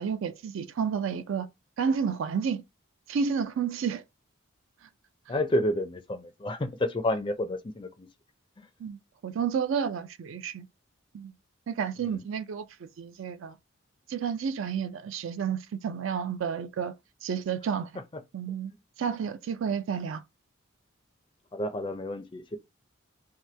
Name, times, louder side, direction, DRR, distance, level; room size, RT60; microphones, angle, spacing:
voice 1, 0.0-1.5 1.8-2.6 3.1-4.0 8.8-10.7 11.1-11.3 11.7-13.5 14.1-16.9 17.2-17.9 18.3-18.7 19.0-20.2, right 6 dB, 70° right, 0.3 m, -31 dB
voice 2, 5.3-8.1 8.6-8.7 12.1-12.2 21.5-22.6, left 1 dB, 25° left, 0.4 m, -30 dB
2.8 x 2.2 x 3.2 m
head